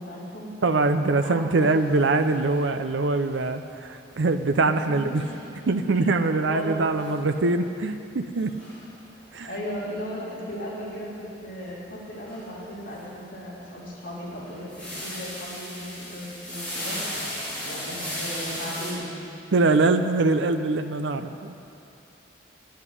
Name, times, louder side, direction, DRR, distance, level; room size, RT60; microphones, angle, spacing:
voice 1, 0.0-0.5 1.2-1.7 4.9-5.0 5.9-6.0 6.5-6.8 9.4-17.0 17.6-19.1, equal, 45° left, -8 dB, 3.3 m, -36 dB
voice 2, 0.6-5.2 5.7-8.5 9.3-9.5 19.5-21.6, right 3 dB, 80° right, 8 dB, 0.6 m, -23 dB
sound 1, 1.6-18.9, equal, 5° left, 3.6 m, -38 dB
10.5 x 8.9 x 9.9 m, 2.5 s
head